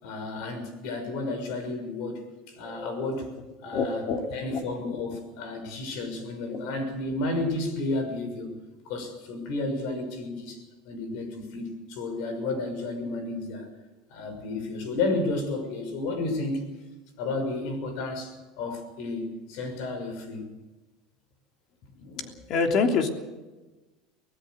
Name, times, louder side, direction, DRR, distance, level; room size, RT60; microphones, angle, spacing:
voice 1, 0.0-2.2 2.5-3.3 3.6-4.1 4.3-8.5 8.8-13.7 14.1-16.6 17.2-20.5, left 2 dB, 65° left, 7 dB, 6.2 m, -32 dB
voice 2, 3.7-4.6 6.5-6.6 22.1-23.1, left 4 dB, 45° left, 4 dB, 3.1 m, -27 dB
24.5 x 18.5 x 6.7 m, 1.2 s
supercardioid pair, 150°, 0 cm